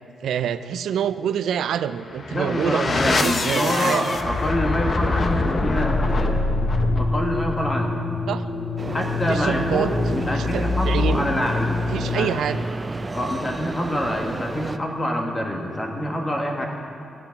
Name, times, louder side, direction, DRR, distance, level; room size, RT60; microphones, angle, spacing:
voice 1, 0.2-4.2 8.3-8.4 9.3-9.9 10.3-11.3 11.9-12.7, right 9 dB, 90° right, 12 dB, 0.3 m, -26 dB
sound 1, 2.0-12.7, left 3 dB, 40° left, 0.8 m, -25 dB
voice 2, 2.3-6.4 7.0-7.9 8.9-12.3 13.1-16.7, equal, 20° left, 1 dB, 1.5 m, -26 dB
sound 2, 8.8-14.8, right 3 dB, 25° right, 0.4 m, -33 dB
13.0 x 8.9 x 5.9 m, 3.0 s
cardioid pair, 115°, 0 cm